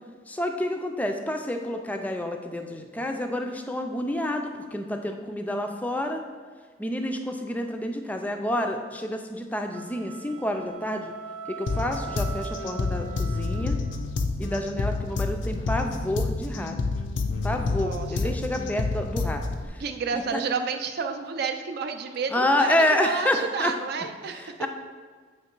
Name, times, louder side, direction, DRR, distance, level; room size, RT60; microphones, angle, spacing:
voice 1, 0.3-6.2 6.8-11.1 11.6-13.8 14.4-16.8 17.4-19.4 19.7-19.8 20.1-20.4 22.3-23.7 24.4-24.7, left 1 dB, 10° left, 4 dB, 0.4 m, -28 dB
sound 1, 9.7-14.2, right 6 dB, 85° right, 0.8 m, -41 dB
sound 2, 11.7-19.7, left 3 dB, 75° left, 0.5 m, -29 dB
voice 2, 17.7-18.3 19.8-22.7 23.0-24.5, right 5 dB, 55° right, 6 dB, 0.4 m, -30 dB
7.6 x 3.1 x 4.5 m, 1.5 s
head